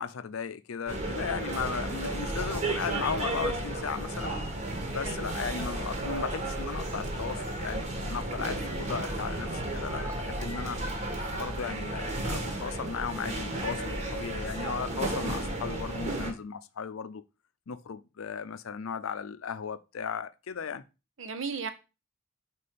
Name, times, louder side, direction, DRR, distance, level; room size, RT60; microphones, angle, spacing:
voice 1, 0.0-4.3 4.9-10.8 11.3-17.2 17.7-20.8, left 6 dB, 90° left, 0.5 m, -36 dB
sound 1, 0.9-16.3, right 1 dB, 35° right, 1.4 m, -33 dB
voice 2, 21.2-21.7, right 5 dB, 70° right, 0.8 m, -36 dB
4.5 x 4.2 x 5.0 m
head